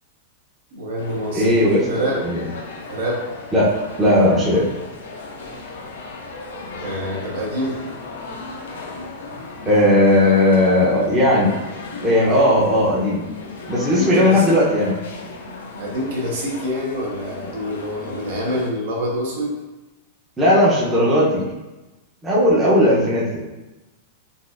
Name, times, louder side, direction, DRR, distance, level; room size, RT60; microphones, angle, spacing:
voice 1, 0.7-2.3 2.9-3.2 6.8-7.8 13.9-14.5 15.8-19.6, equal, 65° right, -2 dB, 0.9 m, -26 dB
sound 1, 1.0-18.7, left 3 dB, 85° left, 0.5 m, -36 dB
voice 2, 1.3-2.4 3.5-3.7 4.0-4.7 9.7-11.5 12.0-13.2 13.7-15.0 20.4-21.5 22.2-23.3, left 1 dB, 10° right, -8 dB, 0.6 m, -16 dB
4.0 x 2.4 x 2.4 m, 1.1 s
supercardioid pair, 170°, 0 cm